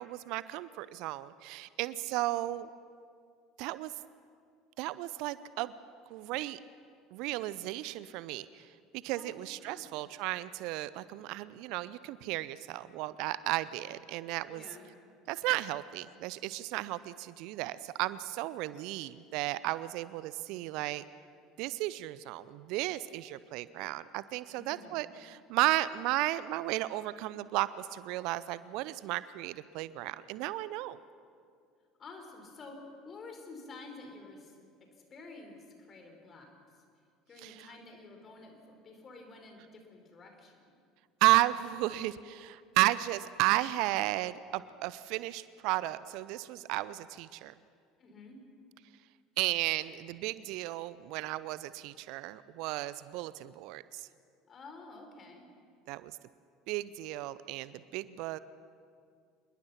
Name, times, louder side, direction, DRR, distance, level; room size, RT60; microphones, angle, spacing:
voice 1, 0.0-2.7 3.6-3.9 4.8-5.7 6.1-6.6 7.1-8.7 8.9-14.6 15.3-21.0 21.6-31.0 37.4-37.7 41.2-47.5 49.4-54.1 55.9-56.1 56.7-58.4, right 17 dB, 60° right, 17 dB, 0.6 m, -34 dB
voice 2, 9.1-9.9 14.4-14.8 24.5-25.0 32.0-32.8 33.0-34.5 35.1-36.8 37.3-40.7 48.0-48.4 54.5-55.5, left 3 dB, 35° left, 3 dB, 5.1 m, -50 dB
26.5 x 21.5 x 6.0 m, 2.2 s
figure-of-eight pair, 65°, 0 cm